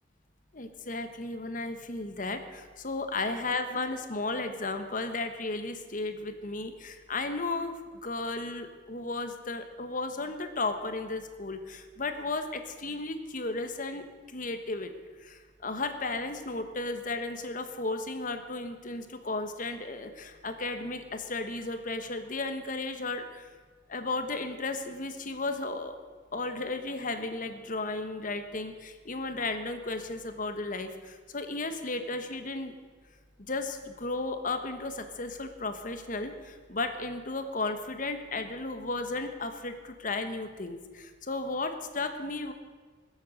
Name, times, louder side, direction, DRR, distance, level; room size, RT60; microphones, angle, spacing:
voice 1, 0.5-14.9 15.2-23.5 23.9-26.0 26.3-32.7 33.4-42.5, left 3 dB, 45° left, 8 dB, 1.3 m, -34 dB
20.0 x 8.0 x 6.5 m, 1.5 s
head